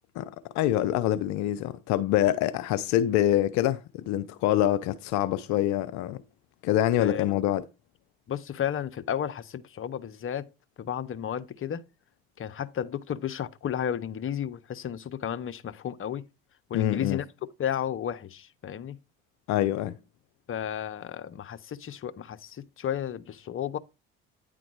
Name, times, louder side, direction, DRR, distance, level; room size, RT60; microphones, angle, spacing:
voice 1, 0.2-6.2 6.6-7.7 16.7-17.2 19.5-20.0, left 13 dB, 70° left, 0.5 m, -25 dB
voice 2, 7.0-7.4 8.3-10.5 10.8-11.8 12.4-16.2 16.7-17.3 17.6-19.0 20.5-23.8, left 9 dB, 45° left, 0.9 m, -33 dB
9.5 x 3.8 x 4.7 m
hypercardioid pair, 60°, 29 cm